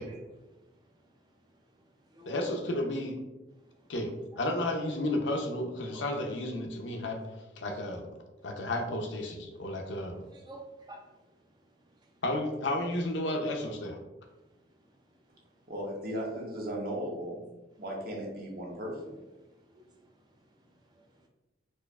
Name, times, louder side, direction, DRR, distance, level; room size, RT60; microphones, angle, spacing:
voice 1, 0.0-2.4 3.6-3.9 4.3-4.5 5.9-6.0 6.9-7.1 8.4-8.7 9.5-12.2 14.3-15.7 17.7-17.8 18.9-21.3, right 1 dB, 20° right, 1 dB, 0.3 m, -55 dB
voice 2, 2.3-3.2 3.9-8.1 8.4-10.2 12.2-14.0, left 1 dB, 75° left, 3 dB, 0.6 m, -32 dB
voice 3, 15.7-17.5 17.8-18.9, equal, 50° right, -2 dB, 0.8 m, -36 dB
4.3 x 2.4 x 2.3 m, 1.1 s
head